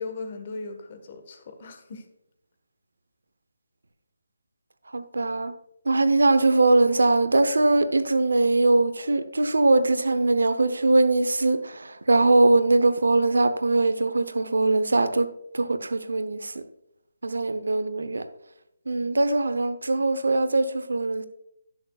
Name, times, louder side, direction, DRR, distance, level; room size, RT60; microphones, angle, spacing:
voice 1, 0.0-2.1, left 3 dB, 40° left, 1.4 m, -37 dB
voice 2, 4.9-5.5 5.9-16.6 17.2-18.3 18.9-21.3, right 2 dB, 85° right, 0.8 m, -21 dB
17.5 x 6.4 x 2.4 m
hypercardioid pair, 160°, 0 cm